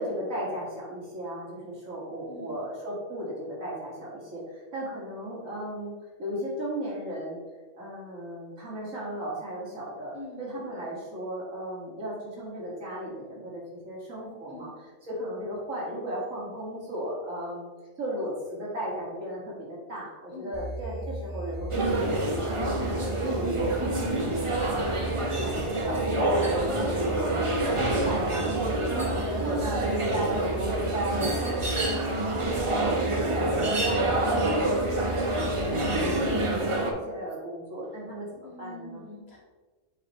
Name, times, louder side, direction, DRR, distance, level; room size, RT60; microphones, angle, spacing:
voice 1, 0.0-5.9 6.2-7.4 7.7-17.7 18.0-24.6 25.0-39.0, equal, 85° right, -5 dB, 2.6 m, -36 dB
voice 2, 2.3-2.6 10.1-10.4 14.5-14.8 20.3-20.6 23.8-24.1 32.3-32.6 38.4-39.4, left 2 dB, 55° left, -3 dB, 1.8 m, -44 dB
sound 1, 20.5-36.5, right 1 dB, 15° left, 0.8 m, -37 dB
sound 2, 21.7-36.9, right 2 dB, 30° right, 0.7 m, -27 dB
7.1 x 5.1 x 3.1 m, 1.3 s
omnidirectional pair, 1.3 m